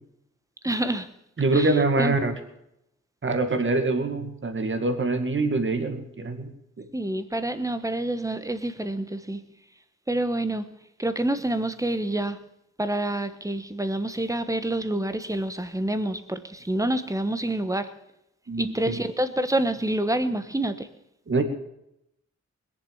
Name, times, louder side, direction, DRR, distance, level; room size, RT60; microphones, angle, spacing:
voice 1, 0.6-1.1 1.5-2.1 6.9-9.4 10.1-10.6 11.0-12.4 12.8-17.9 18.6-20.9, right 1 dB, 10° right, 11 dB, 1.2 m, -27 dB
voice 2, 1.4-2.3 3.2-6.5 6.8-6.9 18.5-19.0 21.3-21.4, right 3 dB, 45° right, 7 dB, 2.2 m, -24 dB
21.0 x 7.3 x 7.1 m, 0.80 s
cardioid pair, 90°, 29 cm